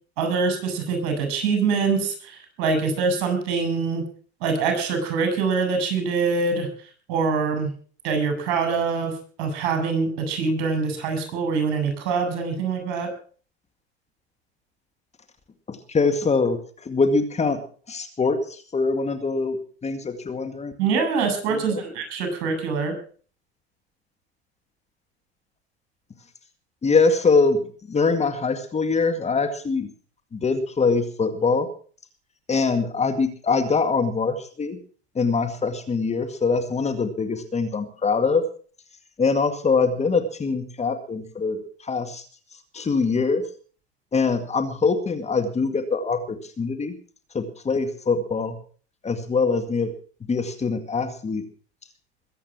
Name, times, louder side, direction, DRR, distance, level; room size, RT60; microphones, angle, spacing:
voice 1, 0.2-4.0 4.4-6.7 7.1-7.7 8.0-13.1 20.8-23.0, right 4 dB, 60° right, 7 dB, 6.8 m, -24 dB
voice 2, 15.7-17.6 17.9-20.7 21.7-21.8 26.8-27.6 27.9-29.9 30.3-31.7 32.5-34.8 35.2-38.5 39.2-42.3 42.7-43.4 44.1-47.0 47.3-48.6 49.0-49.9 50.3-51.4, left 4 dB, 20° left, 7 dB, 2.0 m, -23 dB
22.0 x 8.6 x 6.1 m, 0.43 s
hypercardioid pair, 100°, 33 cm